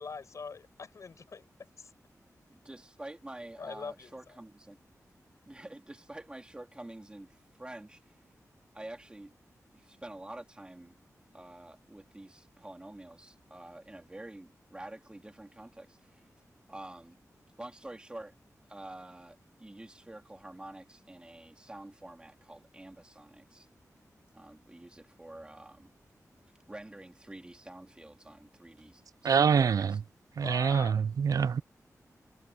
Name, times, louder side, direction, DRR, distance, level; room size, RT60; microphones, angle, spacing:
voice 1, 0.0-1.9 3.6-4.4 30.4-31.0, left 5 dB, 60° left, 6.2 m, -43 dB
voice 2, 2.5-4.8 5.5-8.2 8.7-9.3 9.7-11.0 11.3-16.3 16.7-17.2 17.6-18.3 18.7-23.7 24.3-25.9 26.7-30.0, right 1 dB, 15° right, 2.9 m, -48 dB
voice 3, 29.2-30.0 30.4-31.6, right 6 dB, 75° right, 0.4 m, -25 dB
wide cardioid pair, 145°, 6 cm